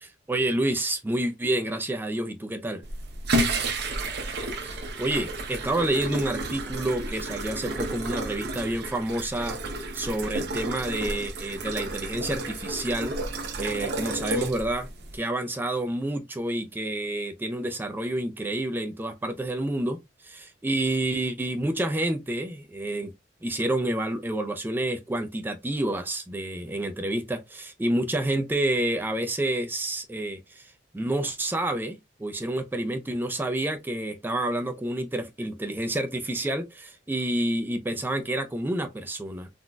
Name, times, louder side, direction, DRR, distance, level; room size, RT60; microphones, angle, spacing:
voice 1, 0.0-2.8 4.6-9.6 9.9-14.9 15.1-23.1 23.4-39.5, right 1 dB, 10° right, 0.3 m, -29 dB
sound 1, 2.8-15.2, right 2 dB, 60° right, 0.7 m, -31 dB
3.7 x 2.4 x 2.2 m
head